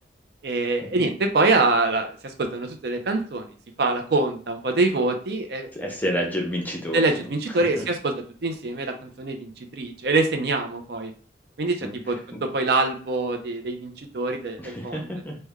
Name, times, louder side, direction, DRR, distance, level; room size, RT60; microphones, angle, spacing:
voice 1, 0.4-3.5 3.8-5.7 6.9-8.1 8.4-11.1 11.6-15.1, right 3 dB, 60° right, 5 dB, 0.5 m, -25 dB
voice 2, 5.7-7.3 7.8-7.9 11.8-11.9 14.6-15.3, equal, 10° left, -1 dB, 0.6 m, -29 dB
3.1 x 2.2 x 3.5 m, 0.43 s
head